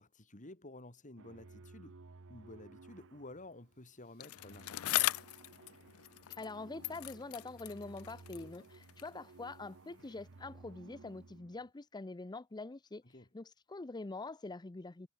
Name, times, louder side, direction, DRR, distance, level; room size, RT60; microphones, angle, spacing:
voice 1, 0.0-2.0 2.3-5.1 13.0-13.3, left 2 dB, 35° left, 3.5 m, -52 dB
sound 1, 1.2-11.7, right 3 dB, 60° right, 0.8 m, -57 dB
Bicycle, 4.2-6.6 6.8-9.2 10.0-10.1, left 16 dB, 80° left, 0.4 m, -39 dB
voice 2, 6.4-13.0 13.3-15.1, left 3 dB, 20° left, 0.5 m, -45 dB
head